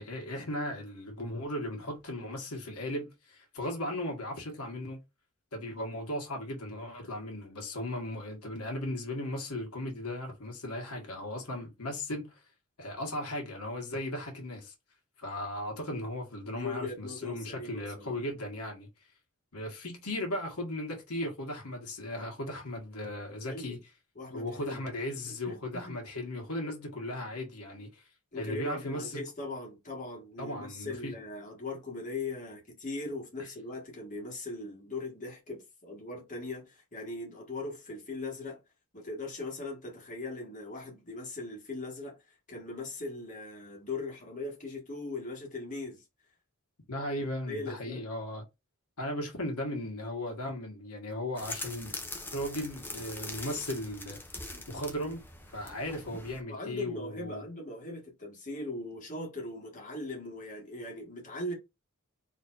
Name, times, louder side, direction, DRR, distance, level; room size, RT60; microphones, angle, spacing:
voice 1, 0.0-5.0 5.5-12.4 12.8-14.7 15.2-18.9 19.5-23.8 24.3-28.0 28.3-29.2 30.4-31.1 46.9-48.4 49.0-52.0 52.3-54.2 54.7-55.2 55.5-57.4, left 1 dB, 85° left, 1.5 m, -36 dB
voice 2, 16.4-18.1 23.5-23.8 24.1-25.2 25.4-26.0 28.3-38.6 38.9-42.2 42.5-46.0 47.5-48.0 54.5-54.6 56.5-61.5, left 2 dB, 35° left, 1.7 m, -40 dB
sound 1, 51.4-56.4, left 2 dB, 10° left, 0.6 m, -42 dB
4.2 x 3.3 x 2.6 m
head